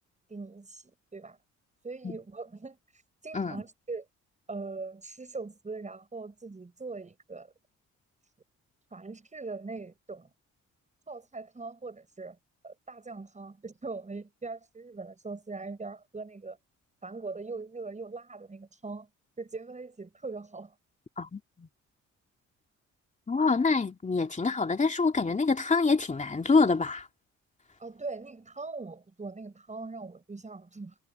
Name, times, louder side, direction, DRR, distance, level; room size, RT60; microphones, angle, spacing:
voice 1, 0.3-1.4 1.8-4.1 4.5-7.5 8.9-10.3 11.1-12.4 12.6-16.6 17.0-19.1 19.4-20.8 27.8-31.0, right 3 dB, 25° right, 7.2 m, -41 dB
voice 2, 21.2-21.7 23.3-27.1, left 4 dB, 25° left, 2.8 m, -26 dB
cardioid pair, 90°, 30 cm